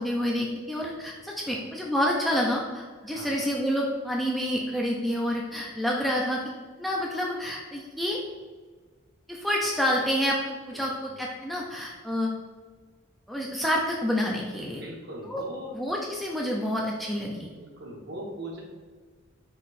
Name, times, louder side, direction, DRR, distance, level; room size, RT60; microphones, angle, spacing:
voice 1, 0.0-6.4 6.8-8.2 9.3-12.3 13.3-14.8 15.3-15.4 15.8-17.5, equal, ahead, -3 dB, 0.4 m, -28 dB
voice 2, 3.0-3.4 10.7-11.1 14.8-15.8 17.6-18.6, right 1 dB, 55° right, -2 dB, 1.1 m, -40 dB
4.3 x 3.0 x 4.1 m, 1.4 s
head